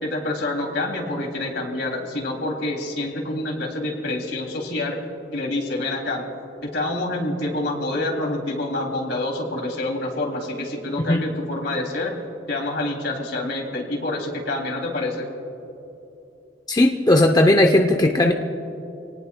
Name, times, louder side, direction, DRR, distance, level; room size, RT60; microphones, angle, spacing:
voice 1, 0.0-5.0 5.3-6.3 6.6-12.1 12.5-15.3, left 2 dB, 65° left, 1 dB, 2.8 m, -27 dB
voice 2, 16.7-18.3, left 1 dB, 20° left, 3 dB, 0.7 m, -16 dB
27.0 x 18.5 x 2.3 m, 2.9 s
head